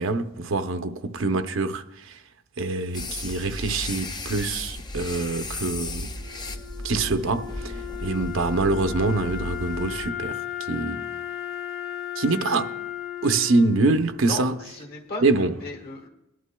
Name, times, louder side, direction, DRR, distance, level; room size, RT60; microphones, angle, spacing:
voice 1, 0.0-2.2 2.6-6.1 6.8-10.4 10.7-11.0 12.2-12.7 13.2-14.6 15.2-15.6, right 3 dB, 70° right, 0.7 m, -25 dB
sound 1, 2.9-10.1, left 2 dB, 20° left, 0.5 m, -35 dB
Wind instrument woodwind instrument, 6.1-15.1, left 11 dB, 80° left, 1.8 m, -36 dB
voice 2, 14.3-16.1, left 2 dB, 50° left, 1.6 m, -36 dB
20.5 x 11.5 x 2.3 m
head